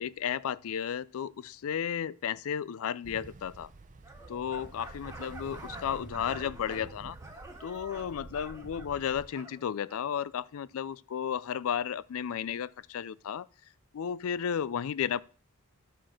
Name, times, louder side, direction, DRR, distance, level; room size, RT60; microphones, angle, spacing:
voice 1, 0.0-3.7 4.3-7.2 7.6-13.5 13.9-15.2, left 8 dB, 65° left, 0.4 m, -33 dB
Ocean, 3.0-9.3, right 2 dB, 35° right, 0.6 m, -48 dB
sound 1, 4.0-10.1, right 2 dB, 15° right, 1.1 m, -48 dB
10.5 x 4.4 x 6.2 m
head